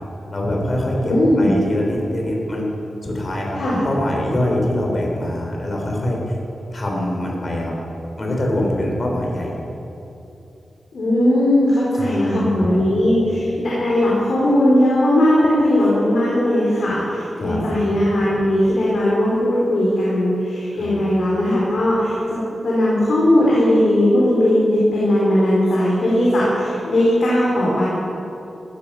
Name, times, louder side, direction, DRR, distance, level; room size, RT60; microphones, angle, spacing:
voice 1, 0.3-2.7 3.0-3.6 3.8-6.2 6.7-7.7 8.2-9.6 12.0-12.7 17.4-17.6 20.8-21.0, left 1 dB, 35° left, -1 dB, 3.5 m, -23 dB
voice 2, 1.0-1.6 3.6-3.8 10.9-22.2 22.6-27.9, left 1 dB, 65° left, -7 dB, 4.0 m, -18 dB
16.5 x 14.5 x 5.6 m, 2.9 s
wide cardioid pair, 150°, 0 cm